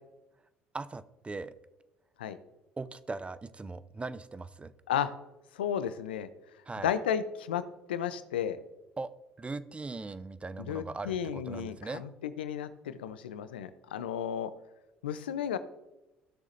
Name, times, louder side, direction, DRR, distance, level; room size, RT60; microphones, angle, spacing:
voice 1, 0.7-1.6 2.8-4.7 6.7-6.9 9.0-9.1 9.4-12.0, right 3 dB, 20° right, 14 dB, 0.6 m, -39 dB
voice 2, 5.5-6.3 6.8-7.6 7.9-8.6 10.7-14.5 15.0-15.6, left 9 dB, 90° left, 13 dB, 0.5 m, -33 dB
16.0 x 6.5 x 2.6 m, 0.98 s
hypercardioid pair, 60°, 5 cm